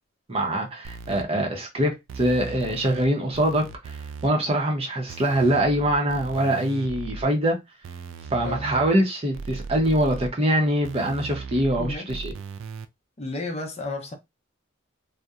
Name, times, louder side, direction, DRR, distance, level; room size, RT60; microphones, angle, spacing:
voice 1, 0.3-7.6 8.3-12.3, right 1 dB, 30° right, 0.6 m, -24 dB
sound 1, 0.8-1.2 2.1-3.1 3.3-4.3 5.1-7.3 7.8-8.9 9.3-10.3 10.8-12.9, right 4 dB, 70° right, 0.3 m, -37 dB
voice 2, 8.4-8.8 11.8-12.1 13.2-14.1, left 2 dB, 35° left, 0.5 m, -32 dB
2.7 x 2.1 x 2.3 m
head